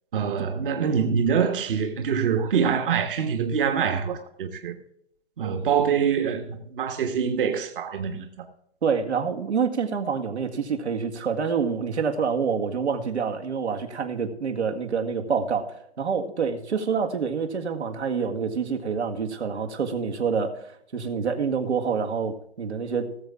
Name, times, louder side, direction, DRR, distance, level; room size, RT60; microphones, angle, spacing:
voice 1, 0.1-4.8 5.4-8.2, right 7 dB, 50° right, 1.5 m, -25 dB
voice 2, 8.8-23.1, right 6 dB, 80° right, 2.0 m, -27 dB
18.5 x 7.3 x 3.6 m
hypercardioid pair, 145°, 33 cm